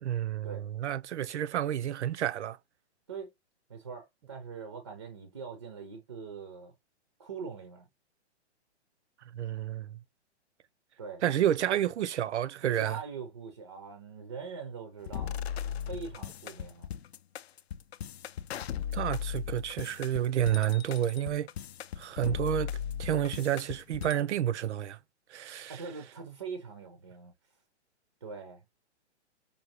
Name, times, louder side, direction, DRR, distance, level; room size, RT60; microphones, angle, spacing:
voice 1, 0.0-2.6 9.3-10.0 11.2-13.0 18.9-21.5 22.0-22.7 23.0-25.0 25.3-25.8, right 11 dB, 75° right, 0.5 m, -30 dB
voice 2, 3.7-6.7 7.2-7.9 11.0-11.2 12.6-15.4 15.8-16.9 25.7-27.3 28.2-28.6, right 5 dB, 25° right, 0.5 m, -42 dB
sound 1, 15.1-24.2, left 9 dB, 65° left, 0.5 m, -37 dB
5.3 x 2.7 x 2.8 m
hypercardioid pair, 170°, 35 cm